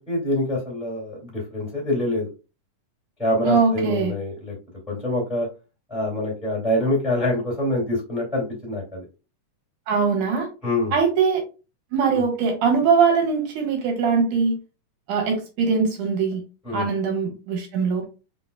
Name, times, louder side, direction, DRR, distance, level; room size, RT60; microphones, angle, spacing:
voice 1, 0.0-2.3 3.2-4.6 4.9-5.5 5.9-9.0 10.6-11.0 12.1-12.2 16.6-16.9, left 1 dB, ahead, -4 dB, 1.9 m, -25 dB
voice 2, 3.4-4.1 9.9-10.5 10.9-11.4 11.9-14.6 15.1-16.4 16.7-18.0, right 5 dB, 75° right, 2 dB, 3.0 m, -21 dB
5.4 x 4.1 x 2.3 m, 0.31 s
omnidirectional pair, 3.7 m